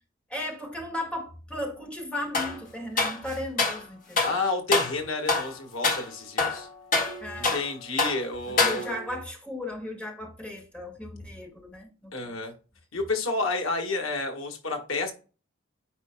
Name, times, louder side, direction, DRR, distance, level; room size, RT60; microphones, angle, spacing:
voice 1, 0.3-4.3 7.2-7.6 8.5-12.3, left 1 dB, 5° left, 1.5 m, -36 dB
sound 1, 2.3-2.6 3.0-3.8 4.2-4.4 4.7-5.0 5.3-5.5 5.8-6.1 6.4-7.7 8.0-8.2 8.6-9.1, left 3 dB, 40° left, 1.7 m, -26 dB
voice 2, 4.2-6.7 7.4-9.0 12.1-12.5 12.9-15.1, left 3 dB, 85° left, 1.5 m, -30 dB
9.5 x 4.7 x 2.2 m
head